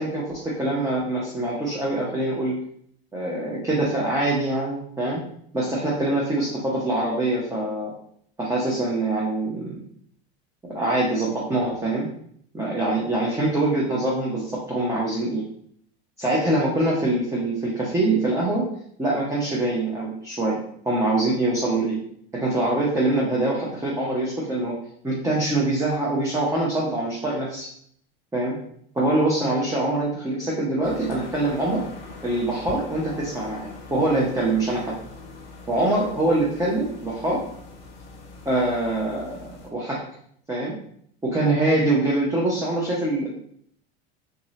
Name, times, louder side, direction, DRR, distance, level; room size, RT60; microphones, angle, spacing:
voice 1, 0.0-2.6 3.1-5.2 5.5-7.9 8.4-9.8 10.7-12.1 12.5-15.4 16.2-18.7 19.0-22.0 22.3-24.8 25.0-27.7 28.3-28.6 28.9-31.8 32.2-34.9 35.7-37.4 38.4-39.3 39.7-40.0 40.5-40.7 41.2-43.3, right 2 dB, 10° right, -5 dB, 0.7 m, -24 dB
sound 1, 30.8-39.7, left 3 dB, 40° left, 1.4 m, -42 dB
3.7 x 2.7 x 3.1 m, 0.66 s
supercardioid pair, 120°, 31 cm